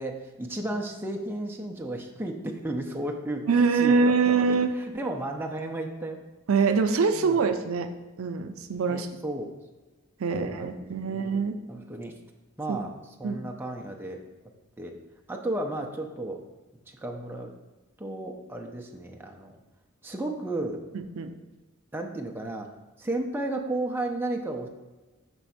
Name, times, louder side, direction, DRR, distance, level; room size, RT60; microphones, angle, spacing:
voice 1, 0.0-6.2 7.1-7.4 8.9-9.5 10.3-11.4 11.7-12.1 12.6-12.9 13.2-14.2 14.8-14.9 15.3-16.4 17.0-17.5 18.0-19.5 20.0-20.8 21.9-22.7 23.0-24.7, right 2 dB, 10° right, 1 dB, 0.6 m, -33 dB
voice 2, 3.5-4.7 6.5-7.9 8.2-9.1 10.2-11.6 12.7-12.8 13.2-13.4 20.9-21.3, right 5 dB, 80° right, 8 dB, 0.5 m, -24 dB
6.1 x 3.4 x 5.6 m, 1.2 s
head